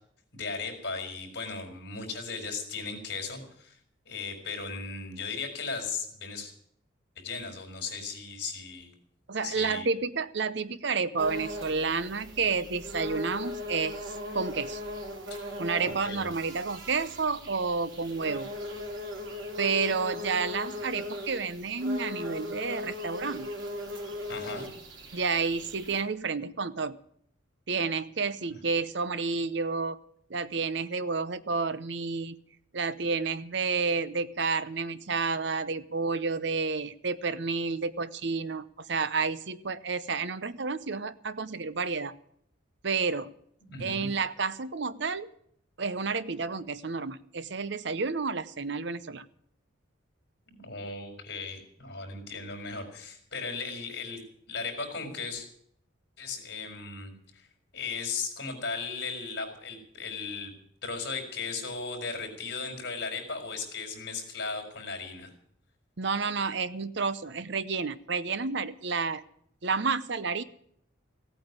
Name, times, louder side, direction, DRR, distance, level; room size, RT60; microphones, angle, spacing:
voice 1, 0.3-3.8 4.1-6.5 7.2-8.9 9.4-9.9 15.8-16.3 24.3-24.7 43.6-44.1 50.5-55.4 56.2-57.5 57.7-60.5 60.8-65.3, left 4 dB, 55° left, 3 dB, 4.6 m, -37 dB
voice 2, 9.3-14.0 14.3-14.8 15.6-18.5 19.6-23.5 25.1-27.0 27.7-30.0 30.3-32.4 32.7-42.1 42.8-43.3 43.8-45.3 45.8-49.3 66.0-69.2 69.6-70.4, right 4 dB, 60° right, 15 dB, 0.8 m, -30 dB
sound 1, 11.2-26.0, left 1 dB, 85° right, 3.4 m, -39 dB
16.5 x 8.9 x 9.6 m, 0.67 s
head